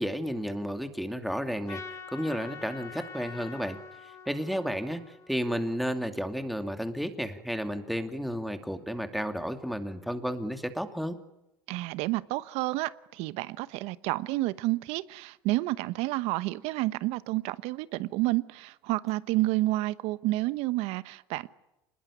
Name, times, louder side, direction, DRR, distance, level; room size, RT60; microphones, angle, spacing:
voice 1, 0.0-1.8 2.1-3.8 4.3-5.0 5.3-11.2, equal, ahead, 2.6 m, -32 dB
Trumpet, 1.7-6.0, left 5 dB, 25° left, 2.9 m, -45 dB
voice 2, 11.7-21.5, right 19 dB, 65° right, 1.1 m, -30 dB
26.5 x 21.0 x 9.9 m
supercardioid pair, 90°, 11 cm